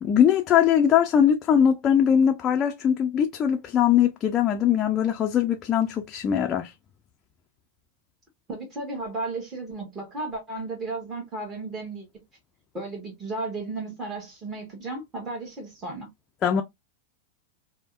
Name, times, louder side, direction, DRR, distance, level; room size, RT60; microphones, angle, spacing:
voice 1, 0.0-6.7 16.4-16.6, left 9 dB, 25° left, 0.5 m, -21 dB
voice 2, 8.5-12.1 12.7-16.1, right 2 dB, 20° right, 1.4 m, -34 dB
5.1 x 2.1 x 2.5 m
figure-of-eight pair, 90°, 0 cm